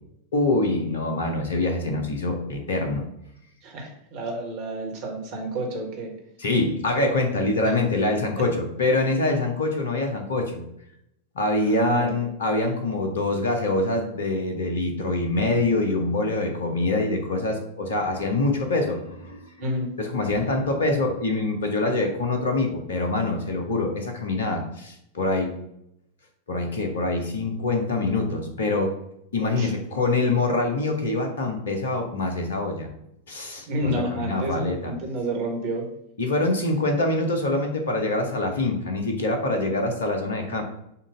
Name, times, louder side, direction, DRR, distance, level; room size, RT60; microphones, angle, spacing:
voice 1, 0.3-3.1 6.4-10.6 11.3-19.4 20.0-25.5 26.5-28.9 29.3-32.9 33.3-33.9 34.1-34.9 36.2-40.6, left 2 dB, 65° left, 4 dB, 1.1 m, -25 dB
voice 2, 3.6-6.1 7.6-7.8 11.6-12.1 19.6-19.9 29.4-29.7 33.7-35.9, right 1 dB, 45° right, 1 dB, 1.7 m, -30 dB
7.0 x 2.7 x 5.1 m, 0.80 s
figure-of-eight pair, 90°, 0 cm